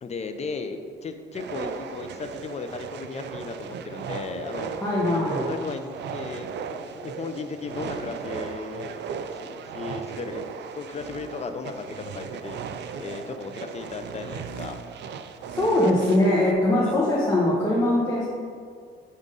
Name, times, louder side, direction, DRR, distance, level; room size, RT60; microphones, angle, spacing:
voice 1, 0.0-4.7 5.5-12.6 13.0-14.8 16.8-17.0, left 4 dB, 35° left, 7 dB, 0.5 m, -36 dB
sound 1, 1.3-16.5, right 6 dB, 60° right, 0.4 m, -36 dB
voice 2, 4.8-5.5 15.5-18.3, left 1 dB, 15° left, -8 dB, 1.2 m, -22 dB
5.4 x 3.6 x 5.2 m, 2.1 s
cardioid pair, 90°, 20 cm